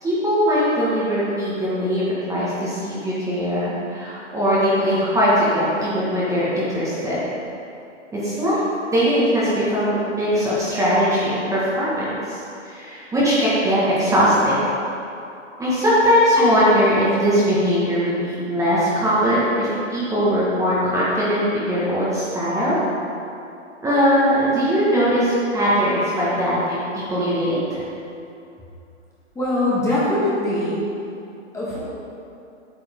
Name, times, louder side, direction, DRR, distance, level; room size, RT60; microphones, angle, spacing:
voice 1, 0.0-7.2 8.1-8.6 8.9-11.9 12.3-14.5 15.6-22.8 23.8-27.8, equal, 10° right, -9 dB, 1.6 m, -20 dB
voice 2, 29.3-30.9 31.5-31.8, left 1 dB, 10° left, -9 dB, 1.6 m, -22 dB
8.4 x 8.3 x 3.7 m, 2.7 s
hypercardioid pair, 140°, 37 cm